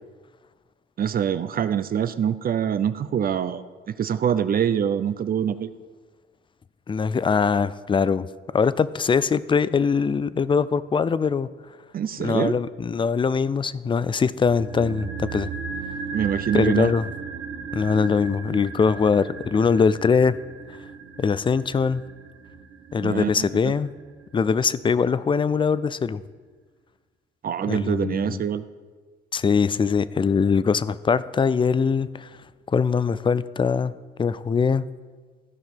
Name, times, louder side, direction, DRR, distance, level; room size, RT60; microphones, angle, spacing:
voice 1, 1.0-5.7 11.9-12.6 16.1-16.9 23.0-23.7 27.4-28.6, right 8 dB, 45° right, 12 dB, 0.5 m, -25 dB
voice 2, 6.9-8.3 8.5-11.5 12.2-15.5 16.5-17.1 17.7-20.4 21.2-22.0 22.9-23.9 24.3-26.2 27.7-28.4 29.3-32.3 32.7-33.9 34.2-34.8, left 5 dB, 25° left, 17 dB, 0.4 m, -22 dB
sound 1, 14.5-24.7 25.0-25.1, right 5 dB, 90° right, 1.3 m, -36 dB
14.0 x 5.4 x 5.8 m, 1.4 s
cardioid pair, 90°, 20 cm